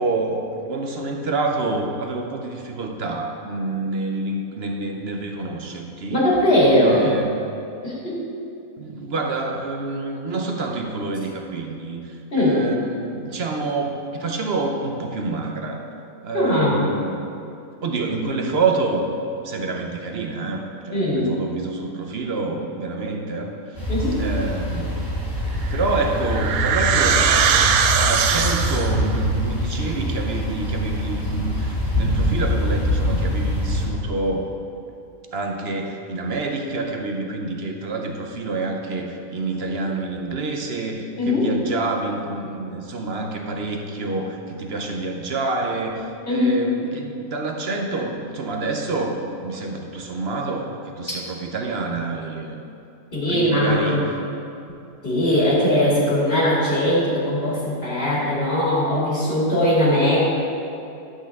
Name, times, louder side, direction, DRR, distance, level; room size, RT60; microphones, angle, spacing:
voice 1, 0.0-6.3 6.7-7.5 8.8-15.8 16.2-17.3 17.8-19.1 19.4-23.9 24.2-25.1 25.7-34.5 35.3-52.6 53.3-54.1, right 3 dB, 55° right, 3 dB, 0.9 m, -27 dB
voice 2, 6.1-7.1 7.8-8.2 12.3-12.6 16.3-16.8 20.9-21.3 23.9-24.2 41.2-41.5 46.3-46.5 53.1-54.0 55.0-60.2, left 1 dB, 40° left, -6 dB, 2.6 m, -20 dB
sound 1, 23.8-33.9, equal, 65° left, 3.0 m, -24 dB
sound 2, 25.6-29.1, right 7 dB, 85° right, 1.1 m, -20 dB
11.0 x 7.9 x 3.6 m, 2.7 s
omnidirectional pair, 1.5 m